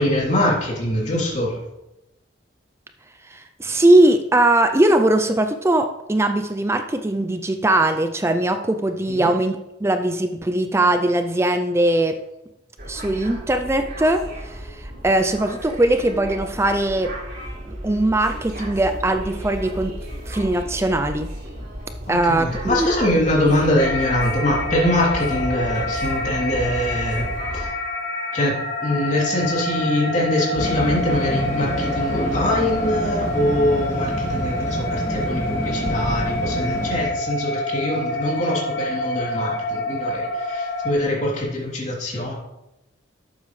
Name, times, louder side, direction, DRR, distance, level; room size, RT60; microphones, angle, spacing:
voice 1, 0.0-1.6 9.1-9.3 22.1-27.7 28.3-42.3, left 1 dB, 40° left, -4 dB, 3.1 m, -23 dB
voice 2, 3.3-12.2 12.8-17.1 17.7-20.0 20.3-21.3 22.1-22.9, right 1 dB, 15° right, 7 dB, 0.4 m, -20 dB
sound 1, 12.8-27.7, equal, 55° right, 3.3 m, -33 dB
sound 2, 23.8-40.9, left 1 dB, 75° left, 1.5 m, -27 dB
sound 3, 30.5-37.0, equal, 15° left, 1.9 m, -27 dB
12.0 x 8.3 x 3.2 m, 0.91 s
head